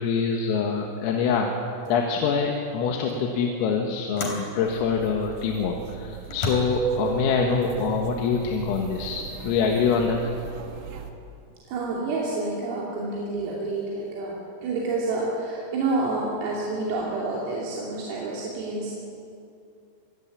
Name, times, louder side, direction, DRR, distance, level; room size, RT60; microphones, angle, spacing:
voice 1, 0.0-1.5 1.9-10.3, left 5 dB, 85° left, 1 dB, 4.3 m, -25 dB
sound 1, 1.2-1.4 1.9-2.1 3.1-3.2 4.2-4.5 5.3-5.4 6.2-6.6, left 2 dB, 40° left, 4.6 m, -33 dB
sound 2, 4.6-11.1, right 7 dB, 65° right, 1.6 m, -37 dB
voice 2, 11.7-14.4 14.6-19.0, right 3 dB, 80° right, -4 dB, 5.5 m, -28 dB
26.0 x 16.5 x 9.9 m, 2.5 s
omnidirectional pair, 5.9 m